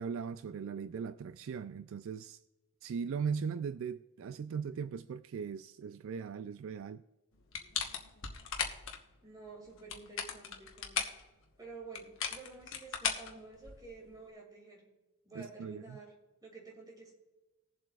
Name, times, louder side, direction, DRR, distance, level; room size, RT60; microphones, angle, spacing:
voice 1, 0.0-2.4 2.8-7.0 15.3-16.0, right 6 dB, 60° right, 0.3 m, -39 dB
sound 1, 7.5-9.0 9.7-11.2 11.9-14.0, left 7 dB, 60° left, 1.2 m, -37 dB
voice 2, 9.2-11.1 11.6-14.9 15.2-16.1 16.4-17.1, right 3 dB, 15° right, 2.5 m, -51 dB
20.0 x 7.5 x 2.4 m
head